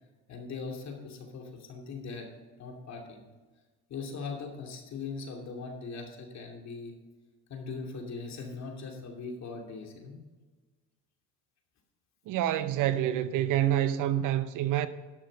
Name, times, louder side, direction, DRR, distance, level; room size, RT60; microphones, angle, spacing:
voice 1, 0.3-2.3 2.6-3.3 3.9-6.9 7.5-10.2, left 4 dB, 45° left, 2.7 m, -40 dB
voice 2, 12.3-14.9, right 12 dB, 55° right, 0.8 m, -27 dB
12.0 x 6.4 x 5.1 m
supercardioid pair, 95°, 36 cm